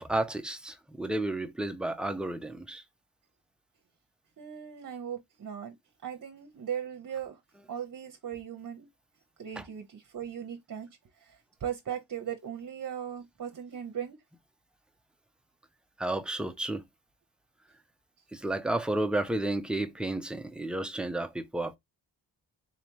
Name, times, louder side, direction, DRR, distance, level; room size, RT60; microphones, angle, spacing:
voice 1, 0.0-2.8 9.6-9.7 16.0-16.8 18.3-21.8, right 2 dB, ahead, 0.6 m, -32 dB
voice 2, 4.4-5.7 6.0-7.4 7.7-8.9 9.4-10.9 11.1-14.2, right 9 dB, 50° right, 0.9 m, -38 dB
4.0 x 3.3 x 2.8 m
cardioid pair, 95°, 41 cm